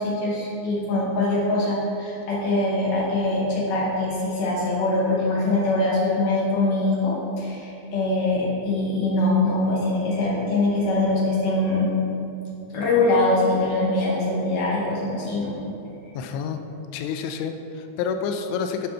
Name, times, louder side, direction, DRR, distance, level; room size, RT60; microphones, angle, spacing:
voice 1, 0.0-11.9 12.7-15.5, left 2 dB, 65° left, -5 dB, 2.5 m, -23 dB
voice 2, 16.1-16.6 16.9-18.9, left 6 dB, 85° left, 6 dB, 2.7 m, -28 dB
9.4 x 4.3 x 5.5 m, 2.7 s
omnidirectional pair, 5.0 m